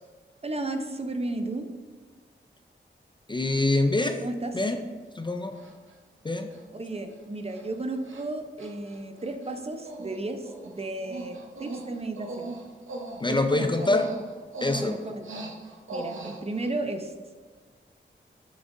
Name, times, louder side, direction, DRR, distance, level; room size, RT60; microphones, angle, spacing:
voice 1, 0.4-1.7 4.2-4.5 6.7-12.5 13.3-13.7 14.8-15.5 15.9-17.1, right 2 dB, 30° right, 6 dB, 0.6 m, -34 dB
voice 2, 3.3-4.2 4.5-4.8 5.2-5.6 6.2-6.5 13.2-14.1 14.6-15.0, left 2 dB, 25° left, 6 dB, 0.4 m, -25 dB
Human voice, 4.7-4.8 5.6-5.9 6.5-6.6 6.9-7.2 7.5-7.6 8.0-8.3 8.6-9.6 9.9-10.2 10.4-16.7, right 2 dB, 85° right, 0.9 m, -39 dB
9.0 x 6.1 x 2.6 m, 1.5 s
wide cardioid pair, 125°, 20 cm